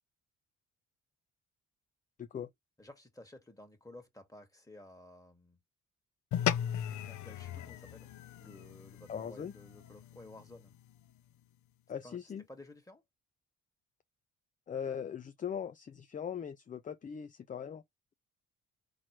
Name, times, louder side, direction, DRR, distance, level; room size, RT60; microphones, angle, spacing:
voice 1, 2.2-2.5 9.1-9.5 11.9-12.4 14.7-17.8, left 8 dB, 25° left, 0.4 m, -40 dB
voice 2, 2.8-5.6 7.0-8.1 8.4-10.7 12.0-12.2 12.5-13.0, left 1 dB, 10° left, 1.7 m, -54 dB
sound 1, 6.3-10.9, left 10 dB, 75° left, 0.6 m, -37 dB
4.3 x 3.0 x 3.0 m
cardioid pair, 90°, 30 cm